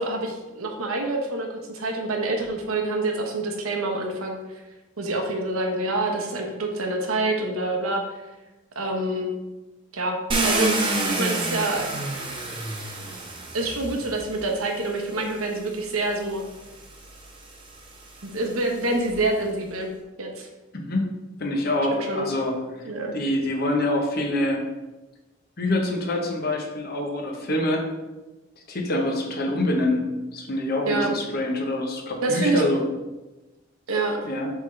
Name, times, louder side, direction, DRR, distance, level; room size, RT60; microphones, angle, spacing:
voice 1, 0.0-4.4 5.0-8.2 8.7-9.3 9.9-11.9 12.5-12.7 13.5-16.4 18.2-19.9 20.2-20.5 21.9-22.3 22.8-23.1 30.9-31.1 32.2-32.6 33.9-34.3, right 2 dB, 90° right, 2 dB, 1.1 m, -27 dB
Car, 10.3-14.4 15.4-15.5 16.0-19.3, right 2 dB, 25° right, 0.8 m, -29 dB
voice 2, 20.7-21.1 21.4-22.9 23.1-24.6 25.6-27.8 28.7-32.9 34.2-34.5, left 1 dB, 45° left, 1 dB, 0.9 m, -25 dB
8.0 x 3.7 x 3.3 m, 1.1 s
head